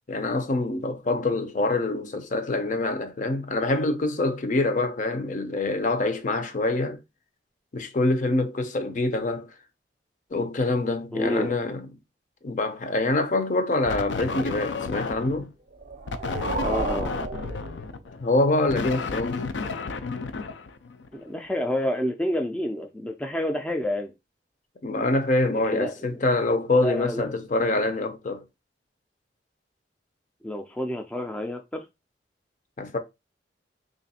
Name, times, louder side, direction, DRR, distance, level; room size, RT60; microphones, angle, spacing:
voice 1, 0.1-7.0 7.7-9.5 10.3-11.9 12.4-15.5 18.2-19.5 24.8-28.4 32.8-33.0, left 2 dB, 45° left, 0.6 m, -25 dB
voice 2, 11.1-11.5 16.6-17.1 21.1-24.1 25.6-25.9 26.8-27.3 30.4-31.8, left 1 dB, 5° left, 0.3 m, -29 dB
sound 1, 13.9-15.5 16.1-21.2, left 4 dB, 85° left, 0.4 m, -32 dB
sound 2, 15.7-18.3, right 3 dB, 45° right, 0.5 m, -32 dB
3.2 x 2.5 x 4.0 m
head